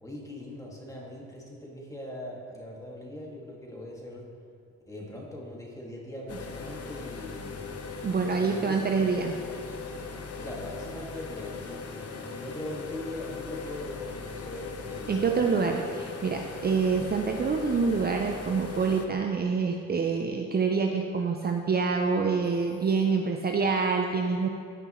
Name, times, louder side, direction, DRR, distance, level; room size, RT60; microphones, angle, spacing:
voice 1, 0.0-4.3 4.9-7.6 8.4-8.9 9.2-9.4 10.4-15.4, left 1 dB, 10° left, -3 dB, 2.1 m, -41 dB
sound 1, 6.3-19.1, left 4 dB, 50° left, 0.9 m, -39 dB
voice 2, 8.0-9.3 15.1-24.5, right 5 dB, 30° right, 3 dB, 0.6 m, -26 dB
16.0 x 5.4 x 3.1 m, 2.4 s
cardioid pair, 90°, 30 cm